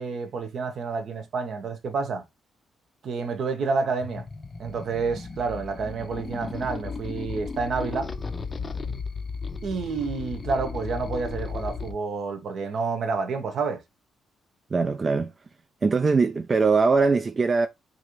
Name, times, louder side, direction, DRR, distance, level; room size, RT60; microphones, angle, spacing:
voice 1, 0.0-2.2 3.0-4.2 4.6-8.1 9.6-13.8, right 4 dB, 60° right, 0.8 m, -29 dB
sound 1, 4.0-11.9, left 4 dB, 30° left, 0.5 m, -35 dB
voice 2, 14.7-15.3 15.8-17.7, right 4 dB, 35° right, 0.3 m, -21 dB
3.0 x 2.5 x 3.0 m
cardioid pair, 90°, 0 cm